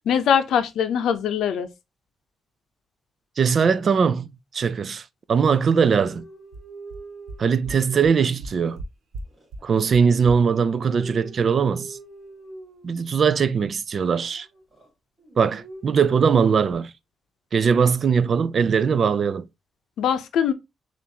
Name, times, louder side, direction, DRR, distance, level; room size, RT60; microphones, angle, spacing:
voice 1, 0.1-1.7 20.0-20.5, left 8 dB, 85° left, 0.6 m, -22 dB
voice 2, 3.4-4.3 4.5-6.2 7.4-8.8 9.6-12.0 12.8-14.5 15.4-16.9 17.5-19.5, right 6 dB, 40° right, 0.3 m, -20 dB
sound 1, 5.8-8.7 9.3-13.5 13.9-14.9 15.2-16.7, right 3 dB, 20° right, 2.7 m, -43 dB
sound 2, 6.5-6.6 6.9-7.0 7.3-7.4 7.6-7.7 8.0-8.1 8.4-8.8 9.1-9.2 9.5-9.6 9.9-10.0 10.3-10.4, right 2 dB, 85° right, 1.1 m, -35 dB
6.9 x 2.5 x 2.8 m
wide cardioid pair, 150°, 0 cm